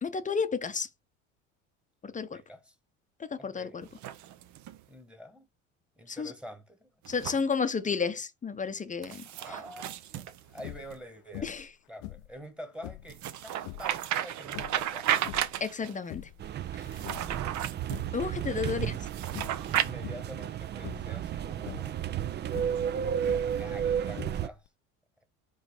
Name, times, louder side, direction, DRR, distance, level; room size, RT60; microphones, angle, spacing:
voice 1, 0.0-0.9 2.0-2.4 3.2-3.9 6.1-6.3 7.1-9.6 11.4-11.6 15.6-16.3 16.7-17.0 18.1-18.9, left 5 dB, 20° left, 0.7 m, -32 dB
voice 2, 2.3-2.8 3.4-3.8 4.9-5.5 6.0-6.9 7.2-7.3 9.3-11.5 11.9-15.2 18.5-18.7 19.7-22.0 23.3-24.7, equal, 5° right, 1.4 m, -47 dB
sound 1, 3.8-4.8 7.1-7.4 9.0-11.0 13.1-16.0 16.8-18.1 19.0-19.9, right 11 dB, 55° right, 0.7 m, -33 dB
sound 2, 10.6-11.0 11.3-11.7 12.0-13.2 13.6-13.9 14.5-15.6 16.0-16.5 16.9-17.6 17.9-18.3 18.6-19.0 19.3-19.7 20.0-20.4 20.8-21.2 21.6-21.9 22.5-23.6 24.1-24.7, left 17 dB, 65° left, 0.6 m, -43 dB
sound 3, 16.4-24.5, right 9 dB, 30° right, 0.4 m, -33 dB
5.2 x 3.9 x 4.9 m
hypercardioid pair, 85°, 36 cm